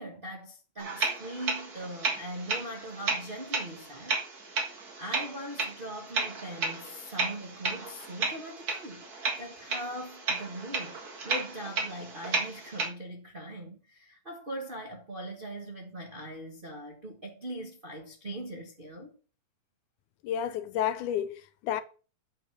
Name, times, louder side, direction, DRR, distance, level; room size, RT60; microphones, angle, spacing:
voice 1, 0.0-4.2 5.0-9.1 9.4-10.9 11.2-19.1, right 1 dB, 60° right, 0.5 m, -41 dB
sound 1, 0.8-12.9, right 3 dB, 40° right, 1.7 m, -34 dB
voice 2, 20.2-21.8, left 10 dB, 85° left, 2.2 m, -31 dB
9.1 x 5.4 x 6.0 m
omnidirectional pair, 3.5 m